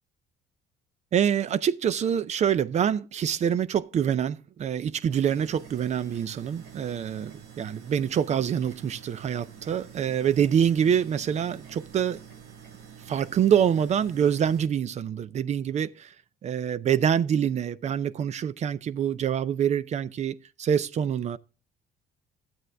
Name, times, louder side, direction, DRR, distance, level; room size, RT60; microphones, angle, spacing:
voice 1, 1.1-12.2 13.1-16.1 16.4-21.4, right 8 dB, 40° right, 0.5 m, -26 dB
sound 1, 5.1-14.7, right 8 dB, 85° right, 1.6 m, -47 dB
12.0 x 7.8 x 3.4 m
cardioid pair, 110°, 17 cm